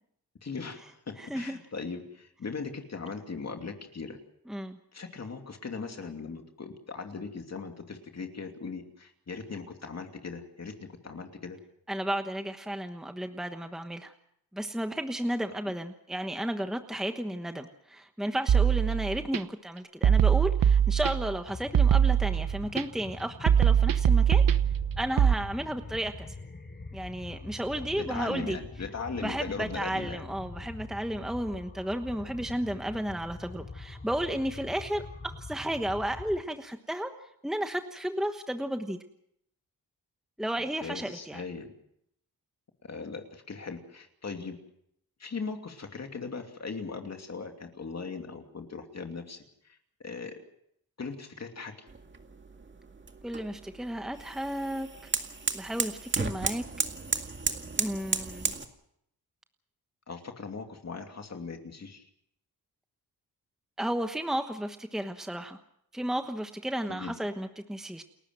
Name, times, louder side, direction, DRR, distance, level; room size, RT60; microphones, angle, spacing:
voice 1, 0.4-4.2 4.9-11.6 27.8-30.2 40.8-41.7 42.8-44.6 45.2-49.4 50.0-50.3 51.0-51.9 60.1-62.1 66.9-67.1, left 4 dB, 50° left, 4 dB, 2.7 m, -39 dB
voice 2, 1.2-1.6 4.5-4.8 11.9-14.1 14.5-24.4 25.0-26.1 26.9-28.6 29.2-37.1 37.4-39.0 40.4-41.4 53.2-54.9 55.5-56.6 57.8-58.5 63.8-65.6 65.9-68.0, right 1 dB, ahead, 7 dB, 1.2 m, -33 dB
sound 1, 18.5-19.4 20.0-21.4 21.7-22.8 23.5-25.3, right 8 dB, 70° right, 1.0 m, -22 dB
sound 2, 21.4-36.4, left 3 dB, 30° left, 2.5 m, -44 dB
sound 3, 51.9-58.7, right 4 dB, 30° right, 2.0 m, -34 dB
29.5 x 14.0 x 7.6 m, 0.74 s
wide cardioid pair, 105°, 35 cm